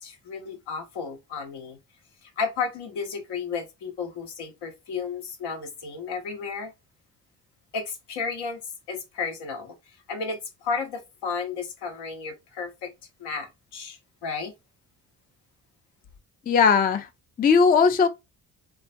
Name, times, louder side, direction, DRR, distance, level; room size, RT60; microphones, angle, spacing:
voice 1, 0.0-1.8 2.2-6.7 7.7-8.6 8.9-9.8 10.1-12.9 13.2-14.5, left 5 dB, 65° left, 0.9 m, -33 dB
voice 2, 16.5-17.1 17.4-18.1, left 5 dB, 20° left, 0.4 m, -18 dB
2.4 x 2.2 x 2.5 m
hypercardioid pair, 50°, 43 cm